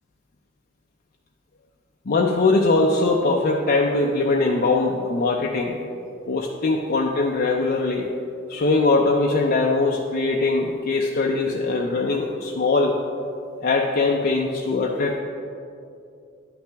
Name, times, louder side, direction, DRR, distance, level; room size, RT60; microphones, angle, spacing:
voice 1, 2.1-5.8 6.3-8.1 8.5-13.0 13.6-15.2, left 3 dB, 50° left, -1 dB, 0.5 m, -21 dB
11.0 x 5.7 x 3.4 m, 2.5 s
head